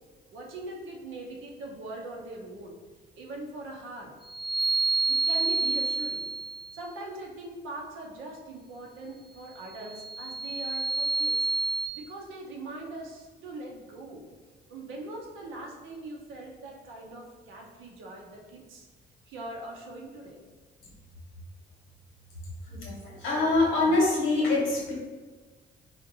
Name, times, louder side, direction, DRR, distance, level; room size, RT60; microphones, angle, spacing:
voice 1, 0.3-2.8 3.1-4.2 5.1-6.3 6.7-11.5 11.9-14.3 14.7-18.9 19.3-20.4, right 2 dB, 85° right, -1 dB, 0.7 m, -41 dB
sound 1, 4.2-6.8 9.8-11.9, right 3 dB, ahead, 0.4 m, -28 dB
voice 2, 22.7-24.9, left 2 dB, 90° left, -3 dB, 1.2 m, -25 dB
3.9 x 2.5 x 2.7 m, 1.4 s
cardioid pair, 90°, 20 cm